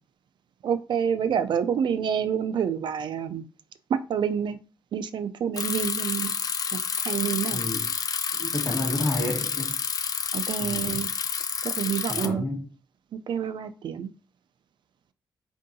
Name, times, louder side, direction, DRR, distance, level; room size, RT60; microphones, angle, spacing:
voice 1, 0.6-3.4 3.9-4.6 4.9-6.3 6.7-7.6 10.3-11.1 11.6-12.4 13.3-14.1, right 8 dB, 70° right, 0.3 m, -28 dB
Bicycle, 5.6-12.3, left 6 dB, 50° left, 0.3 m, -29 dB
voice 2, 7.5-7.9 8.4-9.7 10.6-11.0 12.1-12.7, left 1 dB, 25° left, 1.8 m, -30 dB
4.5 x 2.6 x 2.6 m
wide cardioid pair, 115°, 8 cm